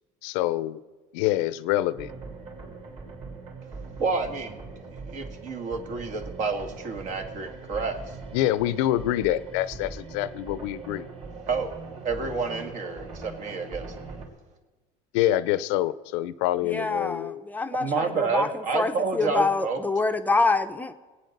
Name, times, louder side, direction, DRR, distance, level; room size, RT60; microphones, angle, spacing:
voice 1, 0.2-0.8 1.1-2.1 8.3-11.1 15.1-17.5, left 14 dB, 80° left, 17 dB, 0.6 m, -26 dB
sound 1, 2.0-14.3, right 4 dB, 35° right, 3.0 m, -41 dB
voice 2, 4.0-4.6 5.1-8.0 11.5-11.7 12.0-13.9 17.8-19.8, right 4 dB, 60° right, 5 dB, 2.0 m, -29 dB
voice 3, 16.7-20.9, left 3 dB, 10° left, 8 dB, 0.6 m, -26 dB
20.0 x 8.7 x 6.5 m, 1.3 s
cardioid pair, 125°, 15 cm